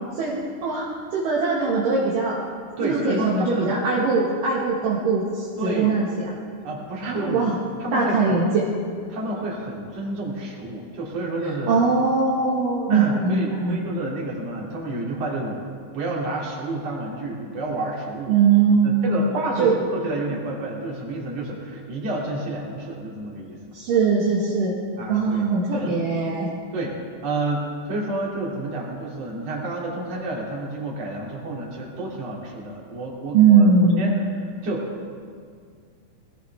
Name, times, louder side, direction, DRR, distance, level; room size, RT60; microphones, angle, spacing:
voice 1, 0.2-2.4 2.8-6.3 7.1-7.6 7.9-8.6 11.7-13.8 18.3-19.3 19.6-19.8 23.7-24.8 25.1-26.5 33.3-34.2, right 4 dB, 65° right, -5 dB, 3.0 m, -21 dB
voice 2, 2.8-3.7 5.6-6.0 6.6-7.4 7.8-8.4 9.1-11.8 12.9-15.6 15.9-18.4 18.8-23.6 25.0-25.5 25.7-26.0 26.7-34.1 34.6-34.9, right 2 dB, 45° right, -4 dB, 3.6 m, -29 dB
20.0 x 17.0 x 3.5 m, 2.2 s
omnidirectional pair, 4.5 m